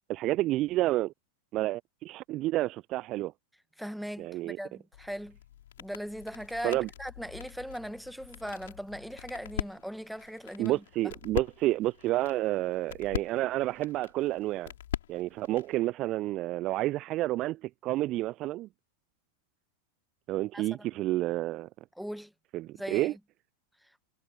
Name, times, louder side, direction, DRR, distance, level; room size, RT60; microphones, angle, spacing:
voice 1, 0.1-1.1 1.5-3.3 4.2-4.6 6.6-6.9 10.6-14.7 15.1-18.7 20.3-21.7 22.5-23.1, right 16 dB, 35° right, 0.4 m, -30 dB
voice 2, 3.8-5.4 5.8-11.1 20.5-20.9 22.0-22.3 22.7-23.1, equal, ahead, 1.7 m, -39 dB
sound 1, 4.9-15.8, left 12 dB, 60° left, 5.6 m, -42 dB
figure-of-eight pair, 90°, 0 cm